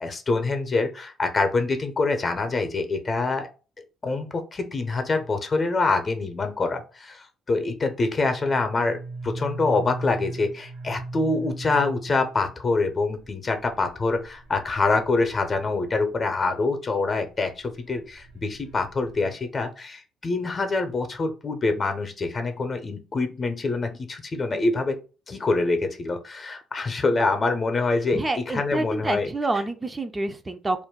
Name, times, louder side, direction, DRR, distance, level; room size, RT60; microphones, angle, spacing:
voice 1, 0.0-3.5 4.0-25.0 25.3-29.3, left 3 dB, 40° left, 7 dB, 0.7 m, -25 dB
sound 1, 8.2-16.4 17.0-19.3, right 2 dB, 85° right, 0.7 m, -39 dB
voice 2, 28.1-30.8, right 2 dB, 25° right, 8 dB, 0.4 m, -28 dB
2.5 x 2.2 x 3.6 m, 0.34 s
hypercardioid pair, 50°, 0 cm